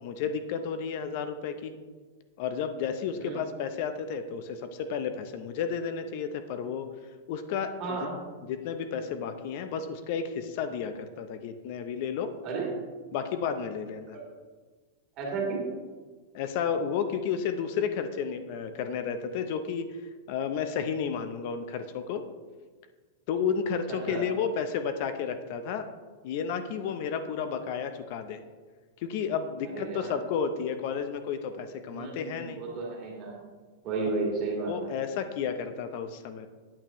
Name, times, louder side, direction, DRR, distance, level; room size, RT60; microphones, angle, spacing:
voice 1, 0.0-1.7 2.4-6.9 7.3-8.0 8.4-12.3 13.1-14.2 16.3-20.0 20.3-22.2 23.3-25.9 26.2-28.4 29.0-32.6 34.7-36.5, left 7 dB, 55° left, 9 dB, 0.6 m, -32 dB
voice 2, 7.8-8.1 12.4-12.7 14.1-14.3 15.2-15.6 23.9-24.3 29.7-30.1 31.9-33.4 33.8-34.9, right 4 dB, 40° right, -3 dB, 2.3 m, -33 dB
8.6 x 6.7 x 3.0 m, 1.4 s
supercardioid pair, 140°, 0 cm